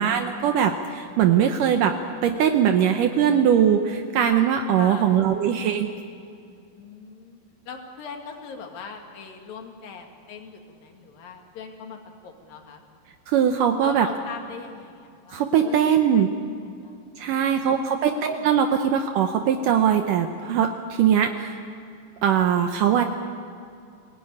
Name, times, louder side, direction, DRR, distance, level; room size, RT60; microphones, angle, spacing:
voice 1, 0.0-2.0 2.2-5.9 13.3-14.1 15.3-16.3 17.2-21.5 22.2-23.0, right 8 dB, 70° right, 6 dB, 2.3 m, -21 dB
voice 2, 4.8-5.1 6.8-7.4 7.7-12.0 12.2-12.8 13.8-16.5 16.8-17.1 17.6-18.5, left 6 dB, 70° left, 4 dB, 3.7 m, -40 dB
23.5 x 17.5 x 9.7 m, 2.4 s
omnidirectional pair, 4.2 m